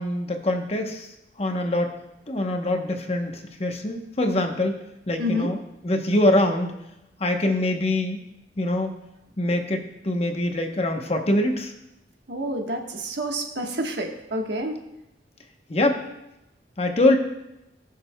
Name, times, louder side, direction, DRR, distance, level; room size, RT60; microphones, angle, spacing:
voice 1, 0.0-1.9 2.3-4.7 5.1-5.6 5.8-6.7 7.2-8.2 8.6-8.9 9.4-11.7 15.7-16.0 16.8-17.2, left 1 dB, 35° left, 4 dB, 0.9 m, -24 dB
voice 2, 5.2-5.5 12.3-14.8, equal, 80° right, 2 dB, 1.3 m, -28 dB
19.5 x 6.6 x 2.2 m, 0.89 s
head